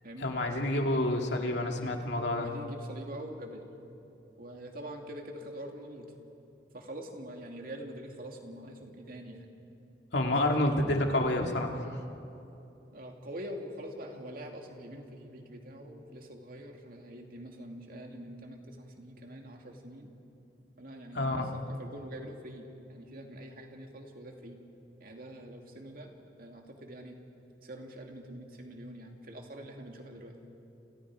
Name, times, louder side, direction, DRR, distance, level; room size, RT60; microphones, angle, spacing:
voice 1, 0.2-2.5 10.1-11.8 21.1-21.5, left 1 dB, 70° left, 2 dB, 2.3 m, -28 dB
voice 2, 2.3-3.7 4.4-6.1 6.7-9.5 10.2-10.8 12.9-20.1 20.8-24.6 25.0-26.1 26.4-27.2 27.6-30.3, right 1 dB, 50° right, 2 dB, 2.6 m, -45 dB
30.0 x 27.5 x 5.0 m, 2.8 s
head